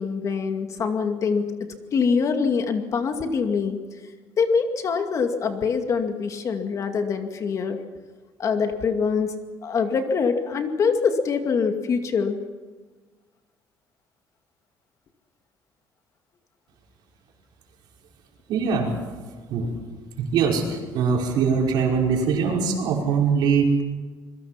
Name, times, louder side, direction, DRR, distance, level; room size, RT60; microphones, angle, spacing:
voice 1, 0.0-3.8 4.4-7.8 8.4-9.3 9.6-12.4, left 5 dB, 45° left, 5 dB, 2.3 m, -24 dB
voice 2, 18.5-19.0 19.5-19.8 20.2-23.8, right 5 dB, 70° right, 0 dB, 5.4 m, -22 dB
26.5 x 22.0 x 5.9 m, 1.4 s
cardioid pair, 135°, 8 cm